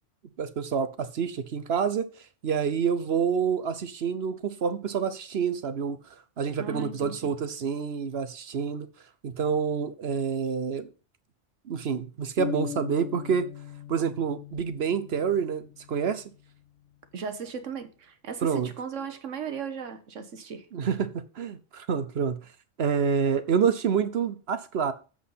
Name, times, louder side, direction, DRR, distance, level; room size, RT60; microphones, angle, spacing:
voice 1, 0.4-2.1 2.4-6.0 6.4-8.9 9.2-10.9 11.7-13.5 13.9-16.2 18.4-18.7 20.7-22.4 22.8-24.9, right 6 dB, 60° right, 1.0 m, -27 dB
voice 2, 6.6-7.3 17.1-20.7, right 6 dB, 85° right, 1.4 m, -36 dB
sound 1, 12.4-16.2, left 9 dB, 75° left, 0.9 m, -39 dB
7.5 x 6.4 x 5.7 m
omnidirectional pair, 1.2 m